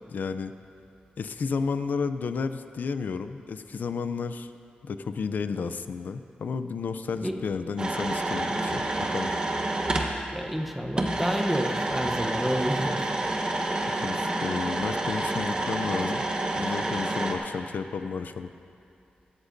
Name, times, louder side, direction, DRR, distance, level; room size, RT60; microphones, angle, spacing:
voice 1, 0.1-0.5 1.2-4.5 4.8-9.3 13.9-16.2 16.5-18.5, left 5 dB, 70° left, 10 dB, 0.5 m, -32 dB
sound 1, 7.8-10.1 11.0-17.3, right 2 dB, 30° right, 1.0 m, -28 dB
voice 2, 10.3-13.0, equal, 5° right, 3 dB, 0.8 m, -29 dB
18.0 x 13.0 x 2.6 m, 2.8 s
wide cardioid pair, 145°, 3 cm